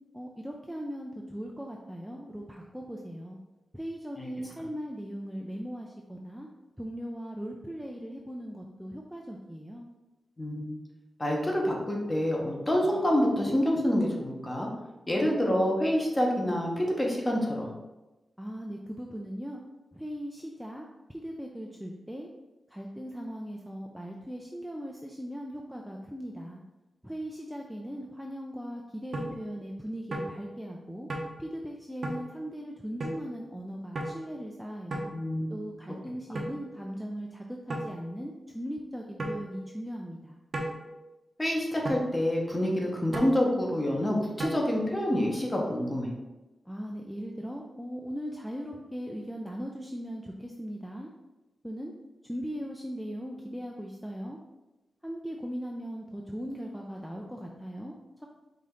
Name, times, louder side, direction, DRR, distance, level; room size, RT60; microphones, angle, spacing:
voice 1, 0.1-3.4 3.7-6.5 6.8-9.9 18.4-19.6 19.9-22.3 22.7-26.6 27.0-31.1 31.4-35.1 35.5-40.4 46.7-51.1 51.6-51.9 52.2-54.4 55.0-57.9 58.2-58.3, equal, ahead, 0 dB, 0.4 m, -39 dB
voice 2, 10.4-10.8 11.2-14.7 15.1-17.7 35.1-35.7 41.4-46.1, equal, 20° left, -1 dB, 1.1 m, -27 dB
sound 1, 29.1-29.3 30.1-30.3 31.1-31.3 32.0-32.2 33.0-33.2 34.0-34.1 34.9-35.1 36.4-36.6 37.7-37.9 39.2-39.4 40.5-40.8 41.9-42.1 43.1-43.4 44.4-44.5, right 1 dB, 65° right, 0.8 m, -33 dB
5.1 x 2.8 x 3.7 m, 1.1 s
cardioid pair, 80°, 0 cm